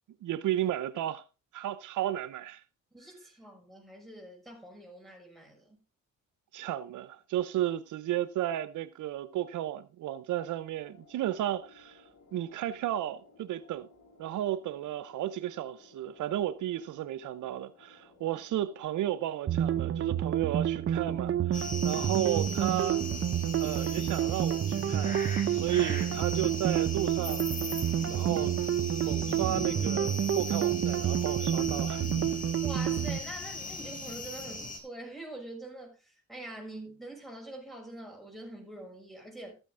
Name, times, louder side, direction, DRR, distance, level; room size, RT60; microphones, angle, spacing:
voice 1, 0.2-1.2 1.5-2.6 6.5-12.0 12.3-13.9 14.2-23.0 23.6-25.2 25.5-27.5 28.1-28.6 29.0-32.1, right 12 dB, 80° right, 0.8 m, -33 dB
voice 2, 2.9-5.8 32.6-39.5, right 1 dB, ahead, 6.4 m, -45 dB
sound 1, 10.7-26.7, left 3 dB, 65° left, 4.2 m, -60 dB
sound 2, 19.5-33.2, right 10 dB, 45° right, 0.7 m, -29 dB
sound 3, 21.5-34.8, left 2 dB, 25° left, 4.1 m, -39 dB
13.0 x 9.0 x 3.8 m
cardioid pair, 90°, 30 cm